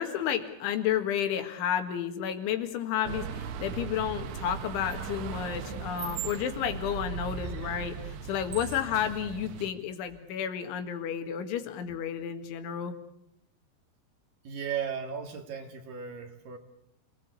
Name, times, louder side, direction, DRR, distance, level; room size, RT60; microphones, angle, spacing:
voice 1, 0.0-8.0 8.3-12.9, left 9 dB, 85° left, 7 dB, 4.3 m, -31 dB
sound 1, 3.1-9.7, right 7 dB, 80° right, 3.8 m, -38 dB
sound 2, 4.3-9.7, left 3 dB, 70° left, 5.9 m, -50 dB
voice 2, 14.4-16.6, right 7 dB, 55° right, 5 dB, 3.5 m, -36 dB
28.0 x 19.0 x 8.3 m, 0.75 s
omnidirectional pair, 5.3 m